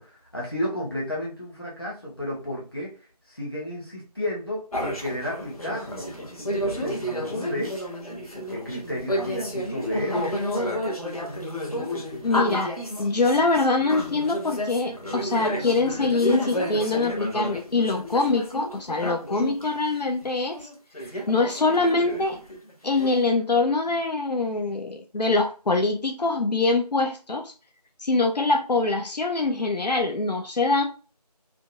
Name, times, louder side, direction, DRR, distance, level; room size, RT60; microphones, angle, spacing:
voice 1, 0.0-3.0 3.3-6.1 6.5-7.8 8.5-10.4 21.0-21.2, left 1 dB, 35° left, -4 dB, 1.2 m, -32 dB
sound 1, 4.7-19.7 20.2-20.3 20.5-23.2, equal, 60° left, 1.1 m, -31 dB
voice 2, 12.2-20.6 21.3-22.4 22.8-27.5 28.0-30.8, left 3 dB, 80° left, 3 dB, 0.6 m, -24 dB
3.6 x 2.3 x 2.5 m, 0.36 s
figure-of-eight pair, 180°, 21 cm